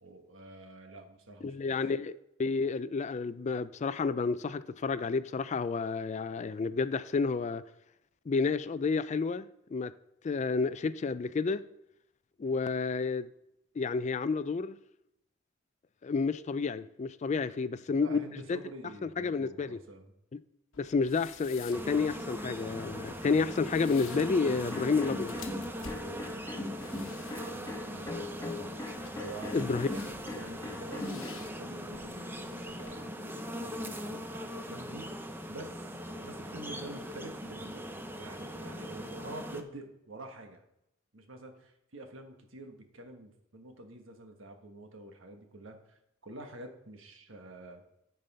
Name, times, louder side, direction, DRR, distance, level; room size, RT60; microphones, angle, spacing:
voice 1, 0.0-1.9 17.5-20.1 25.9-28.8 29.2-35.1 35.5-37.8 38.1-40.6 41.1-47.8, right 2 dB, 75° right, 1.5 m, -48 dB
voice 2, 1.4-7.6 8.3-9.9 10.2-11.6 12.4-13.3 13.8-14.8 16.0-18.2 18.5-18.6 19.0-19.8 20.8-25.4 29.5-29.9, left 4 dB, 35° left, 0.3 m, -30 dB
sound 1, 20.7-32.9, left 5 dB, 85° left, 1.1 m, -53 dB
sound 2, 21.7-39.6, equal, 10° right, 0.7 m, -40 dB
sound 3, 24.7-31.3, left 2 dB, 15° left, 1.2 m, -40 dB
9.0 x 5.4 x 5.5 m
head